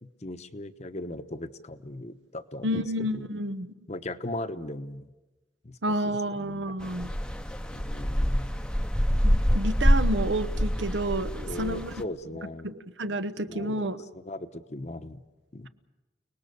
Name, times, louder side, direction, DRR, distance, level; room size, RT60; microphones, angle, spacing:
voice 1, 0.0-3.3 3.9-5.1 5.6-5.8 6.0-6.7 7.7-8.6 11.4-12.7 13.5-15.2 15.5-15.7, left 1 dB, 40° left, 10 dB, 1.0 m, -38 dB
voice 2, 2.6-3.7 5.8-7.1 9.2-11.9 12.6-14.0, right 1 dB, 85° right, 11 dB, 1.1 m, -30 dB
sound 1, 6.8-12.0, equal, 5° left, 0.8 m, -26 dB
30.0 x 19.5 x 6.9 m, 1.1 s
head